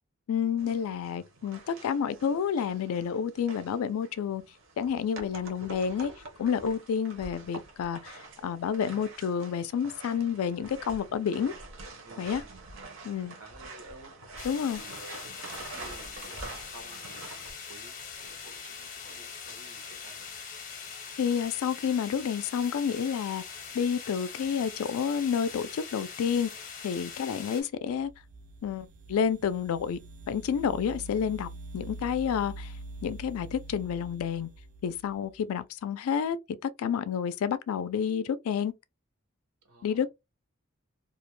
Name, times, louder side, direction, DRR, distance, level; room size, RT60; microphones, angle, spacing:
voice 1, 0.3-4.4 4.8-6.1 6.4-11.5 12.2-12.4 13.0-13.4 14.4-14.8 21.2-23.4 23.7-26.5 26.8-28.1 28.6-30.0 30.3-32.7 33.0-34.5 34.8-36.4 36.6-38.7 39.8-40.1, left 7 dB, 80° left, 0.3 m, -29 dB
sound 1, 0.6-17.5, right 2 dB, 60° right, 0.7 m, -46 dB
voice 2, 12.0-12.6 13.4-14.4 14.7-15.2 15.5-17.3 17.7-20.3 39.6-40.1, right 3 dB, 85° right, 0.9 m, -52 dB
sound 2, 14.4-27.6, left 6 dB, 35° left, 0.6 m, -42 dB
sound 3, 27.8-35.4, right 2 dB, 35° right, 0.3 m, -45 dB
2.4 x 2.1 x 3.0 m
head